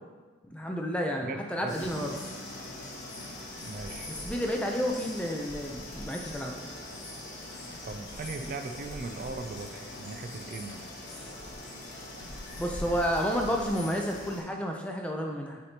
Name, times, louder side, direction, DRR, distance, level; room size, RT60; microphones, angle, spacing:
voice 1, 0.5-2.2 4.1-6.7 12.6-15.6, equal, 5° left, 1 dB, 0.5 m, -31 dB
voice 2, 1.2-1.8 3.6-4.1 7.9-10.8, right 3 dB, 45° right, 6 dB, 0.3 m, -39 dB
Acoustic guitar, 1.7-6.0, equal, 75° left, 1.2 m, -49 dB
sound 1, 1.7-14.4, left 1 dB, 40° left, 1.7 m, -43 dB
sound 2, 2.0-14.0, left 2 dB, 60° left, 0.7 m, -48 dB
8.1 x 4.4 x 2.9 m, 1.3 s
head